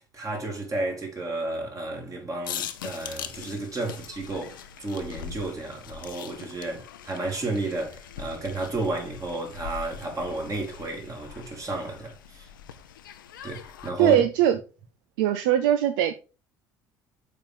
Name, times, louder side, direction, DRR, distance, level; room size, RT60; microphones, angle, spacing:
voice 1, 0.1-12.5 13.4-14.2, right 2 dB, 30° right, 2.7 m, -32 dB
sound 1, 2.4-13.9, left 9 dB, 80° left, 0.6 m, -41 dB
voice 2, 14.0-14.6 15.2-16.1, right 11 dB, 70° right, 0.5 m, -21 dB
6.7 x 4.4 x 3.8 m
hypercardioid pair, 60°, 11 cm